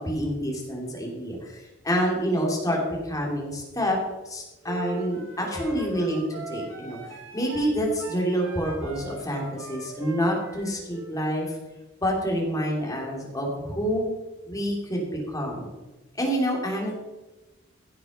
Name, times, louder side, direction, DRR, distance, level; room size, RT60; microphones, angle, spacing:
voice 1, 0.0-4.0 4.2-7.0 7.3-11.6 12.0-14.1 14.5-15.7 16.2-16.9, equal, 15° left, -1 dB, 3.0 m, -27 dB
sound 1, 4.6-11.1, right 2 dB, 70° right, 2.4 m, -40 dB
16.0 x 6.6 x 5.5 m, 1.1 s
head